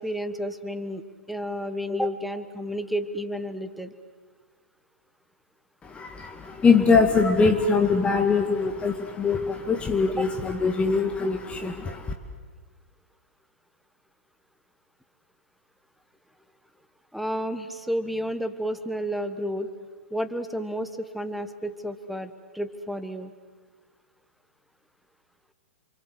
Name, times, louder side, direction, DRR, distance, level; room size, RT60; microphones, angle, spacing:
voice 1, 0.0-3.9 10.1-10.3 17.1-19.7 20.1-23.3, equal, ahead, 10 dB, 1.4 m, -31 dB
voice 2, 5.8-12.1, left 4 dB, 15° left, 4 dB, 1.9 m, -22 dB
28.5 x 25.0 x 8.2 m, 1.5 s
figure-of-eight pair, 110°, 7 cm